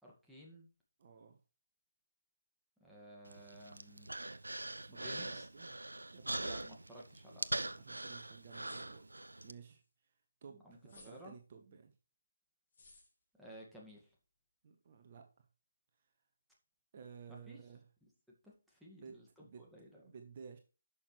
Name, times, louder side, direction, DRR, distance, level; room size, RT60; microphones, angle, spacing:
voice 1, 0.0-0.7 2.8-4.2 4.9-5.5 6.4-7.7 10.6-11.4 13.4-14.1 17.3-17.6 18.0-18.1 18.4-20.0, equal, ahead, -4 dB, 2.0 m, -55 dB
voice 2, 1.0-1.4 4.8-5.8 6.1-6.4 7.6-10.1 10.4-11.9 14.6-15.4 16.9-17.9 18.9-20.6, right 6 dB, 35° right, 5 dB, 1.3 m, -55 dB
Human voice, 3.3-9.5, right 2 dB, 75° right, 0.6 m, -42 dB
sound 1, 8.3-9.3 10.8-11.2 12.7-13.1, left 3 dB, 45° left, 3.2 m, -61 dB
11.0 x 6.5 x 3.3 m, 0.33 s
figure-of-eight pair, 145°, 0 cm